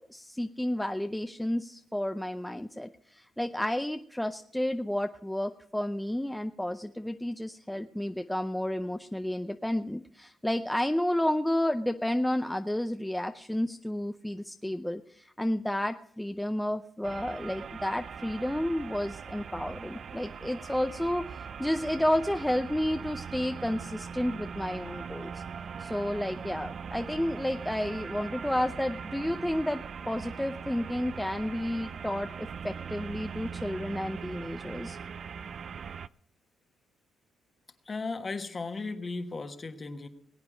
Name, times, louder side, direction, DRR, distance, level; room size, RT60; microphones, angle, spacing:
voice 1, 0.1-25.4 25.8-35.0, left 1 dB, 5° left, 7 dB, 0.5 m, -31 dB
sound 1, 17.0-36.1, right 6 dB, 50° right, 0.4 m, -41 dB
voice 2, 37.9-40.1, left 3 dB, 30° left, 8 dB, 1.3 m, -36 dB
20.5 x 8.6 x 5.0 m, 0.64 s
cardioid pair, 90°, 0 cm